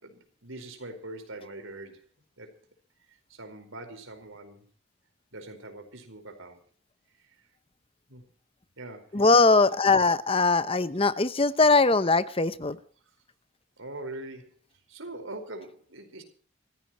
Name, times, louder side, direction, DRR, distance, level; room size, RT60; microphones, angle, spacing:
voice 1, 0.0-2.0 2.4-2.5 3.3-4.6 5.3-6.6 8.1-8.2 8.8-9.2 13.8-14.5 14.9-16.2, right 2 dB, 75° right, 6 dB, 4.8 m, -42 dB
voice 2, 9.1-12.8, left 3 dB, 25° left, 14 dB, 0.8 m, -21 dB
27.0 x 15.0 x 3.0 m, 0.42 s
head